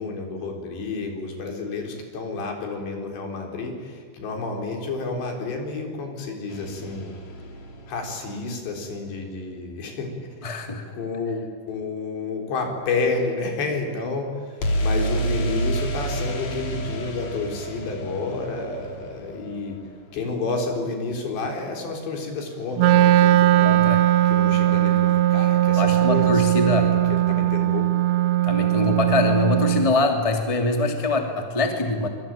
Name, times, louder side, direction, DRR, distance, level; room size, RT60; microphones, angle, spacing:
voice 1, 0.0-7.1 7.9-10.3 10.9-19.8 20.1-23.8 24.3-27.9, left 3 dB, 65° left, 3 dB, 6.1 m, -30 dB
sound 1, 6.5-8.5 14.6-20.4, right 1 dB, 40° left, 3.8 m, -29 dB
voice 2, 10.4-10.8 23.6-24.0 25.8-26.9 28.4-32.1, left 2 dB, 10° left, 3 dB, 1.8 m, -23 dB
Wind instrument woodwind instrument, 22.8-29.9, right 14 dB, 80° right, 2.3 m, -19 dB
25.5 x 23.5 x 9.1 m, 2.1 s
omnidirectional pair, 5.4 m